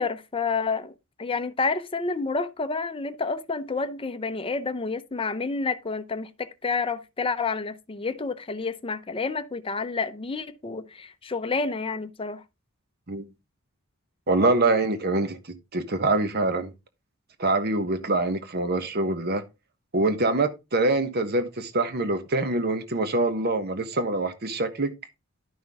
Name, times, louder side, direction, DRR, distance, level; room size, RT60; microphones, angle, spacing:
voice 1, 0.0-12.4, left 4 dB, 25° left, 0.6 m, -29 dB
voice 2, 14.3-15.4 15.7-16.7 17.4-19.4 19.9-24.9, right 2 dB, 50° right, 1.1 m, -24 dB
11.5 x 5.8 x 3.5 m
head